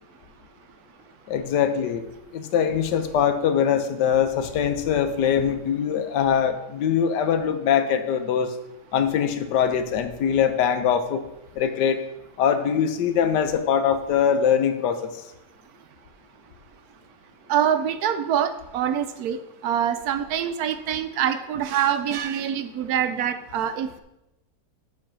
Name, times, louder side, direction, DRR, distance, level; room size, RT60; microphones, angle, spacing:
voice 1, 1.3-2.0 2.3-8.5 8.9-11.2 11.6-12.0 12.4-15.1, left 8 dB, 85° left, 10 dB, 1.3 m, -22 dB
voice 2, 17.5-23.9, right 9 dB, 70° right, 10 dB, 1.0 m, -25 dB
7.5 x 4.8 x 6.0 m, 0.92 s
omnidirectional pair, 1.8 m